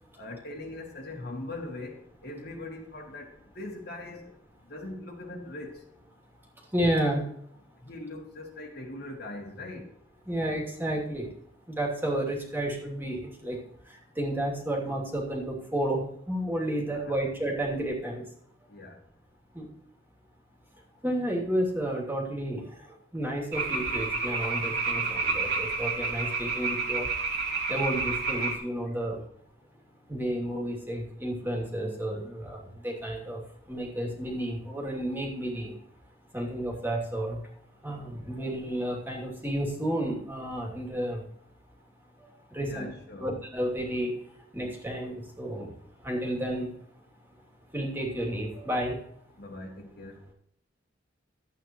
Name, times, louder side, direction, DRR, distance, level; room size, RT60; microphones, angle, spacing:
voice 1, 0.2-4.3 4.7-5.8 7.8-9.9 16.9-17.2 18.7-19.0 28.9-29.0 42.7-43.3 49.4-50.2, left 2 dB, 55° left, 1 dB, 2.4 m, -41 dB
voice 2, 6.7-7.2 10.3-11.3 11.7-13.6 13.8-18.2 19.5-19.7 21.0-29.2 30.1-35.8 36.3-37.4 37.8-41.2 42.2-42.9 43.2-44.2 44.5-45.7 46.0-46.7 47.7-49.0, right 1 dB, 10° right, -1 dB, 2.7 m, -31 dB
sound 1, 23.5-28.6, right 4 dB, 60° right, 2.3 m, -30 dB
13.0 x 8.9 x 3.1 m, 0.69 s
head